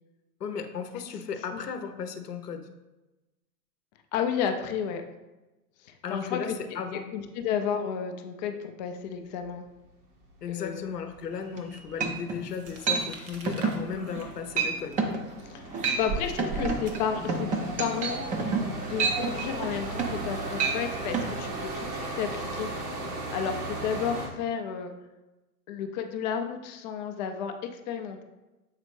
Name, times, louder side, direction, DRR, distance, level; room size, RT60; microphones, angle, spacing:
voice 1, 0.4-2.7 6.0-7.1 10.4-15.0, left 6 dB, 80° left, 7 dB, 0.8 m, -35 dB
voice 2, 4.1-5.0 5.8-9.6 10.5-10.8 15.4-18.4 18.7-22.7 23.3-24.9 25.7-28.2, left 7 dB, 30° left, 6 dB, 0.4 m, -32 dB
sound 1, 10.0-10.1 10.4-24.3, right 2 dB, 70° right, 1.6 m, -38 dB
sound 2, 11.6-11.7 12.0-12.4 12.9-13.1 13.5-13.8 14.1-14.3 14.6-14.7 15.0-15.2 15.7-16.1 16.4-20.3 20.6-20.8 21.1-21.3, right 5 dB, 15° right, 0.5 m, -28 dB
sound 3, 12.5-17.6, right 3 dB, 45° right, 1.2 m, -40 dB
7.4 x 4.0 x 3.2 m, 1.1 s
figure-of-eight pair, 100°, 47 cm